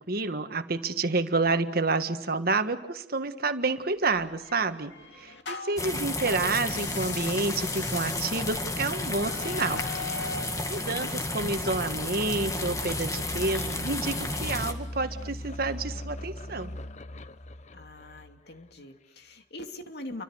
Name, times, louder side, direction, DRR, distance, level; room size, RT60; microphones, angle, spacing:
voice 1, 0.0-9.9 10.7-16.7, right 3 dB, 60° right, 8 dB, 1.6 m, -29 dB
sound 1, 4.1-5.9 6.6-10.6, left 5 dB, 85° left, 2.7 m, -40 dB
sound 2, 5.8-14.7, left 2 dB, 20° left, 2.1 m, -32 dB
sound 3, 9.3-18.5, left 1 dB, 40° left, 0.9 m, -41 dB
voice 2, 17.7-20.2, left 1 dB, 65° left, 6 dB, 2.6 m, -43 dB
28.5 x 25.0 x 6.5 m, 0.92 s
head